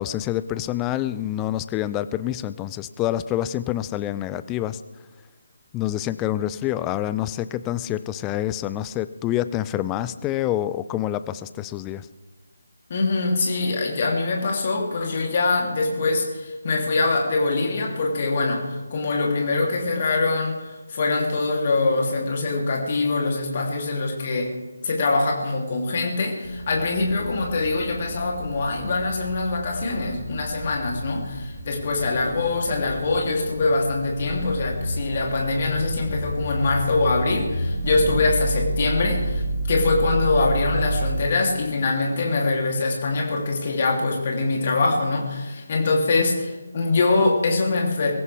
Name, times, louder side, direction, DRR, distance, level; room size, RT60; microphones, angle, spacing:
voice 1, 0.0-4.8 5.7-12.1, left 13 dB, 10° left, 14 dB, 0.4 m, -27 dB
voice 2, 12.9-24.5 24.8-48.1, left 3 dB, 30° left, 0 dB, 3.1 m, -23 dB
sound 1, 26.4-41.2, right 1 dB, 10° right, 3.8 m, -30 dB
23.0 x 15.0 x 3.5 m, 1.3 s
figure-of-eight pair, 155°, 0 cm